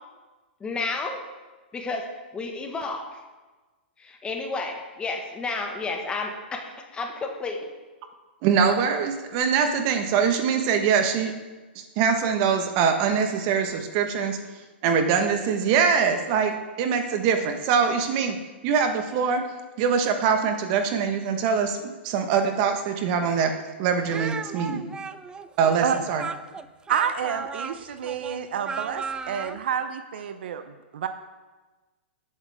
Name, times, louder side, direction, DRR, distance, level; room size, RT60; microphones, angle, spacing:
voice 1, 0.6-1.2 1.7-2.1 2.3-3.2 4.0-7.7, left 3 dB, 15° left, 3 dB, 1.6 m, -31 dB
voice 2, 8.4-11.3 12.0-14.4 14.8-18.4 18.6-19.4 19.8-23.5 23.8-24.9 25.6-26.2, right 6 dB, 45° right, 6 dB, 1.4 m, -23 dB
Speech, 24.1-29.6, right 5 dB, 15° right, 0.4 m, -35 dB
voice 3, 26.9-31.1, right 8 dB, 65° right, 9 dB, 0.8 m, -29 dB
19.0 x 7.7 x 3.6 m, 1.2 s
hypercardioid pair, 120°, 6 cm